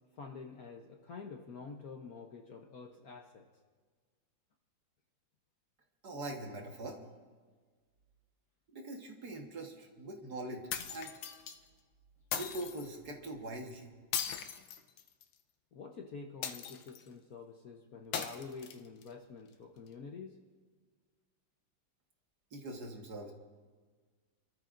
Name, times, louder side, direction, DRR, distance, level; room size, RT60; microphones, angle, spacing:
voice 1, 0.2-3.5 15.7-20.4, left 4 dB, 55° left, 2 dB, 1.1 m, -48 dB
voice 2, 6.0-7.0 8.7-11.1 12.4-13.9 22.5-23.3, right 1 dB, 50° right, 1 dB, 2.0 m, -43 dB
sound 1, 10.7-11.6 12.3-12.9 14.1-15.3 16.4-17.1 18.1-19.1, left 8 dB, 85° left, 1.7 m, -39 dB
28.5 x 13.5 x 2.6 m, 1.5 s
omnidirectional pair, 2.3 m